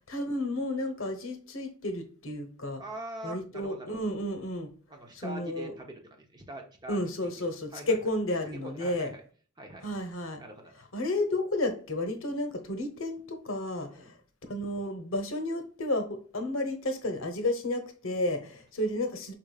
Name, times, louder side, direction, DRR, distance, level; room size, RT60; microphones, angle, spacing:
voice 1, 0.0-2.8 3.2-4.7 5.1-5.7 6.9-9.1 9.8-10.4 10.9-14.2 14.5-19.3, left 1 dB, 75° left, 0.9 m, -32 dB
voice 2, 2.8-4.1 4.9-8.0 8.6-9.2 9.6-9.9 10.4-10.7 13.9-14.1 18.4-18.5, right 1 dB, 20° right, 0.7 m, -44 dB
4.9 x 4.3 x 2.3 m
head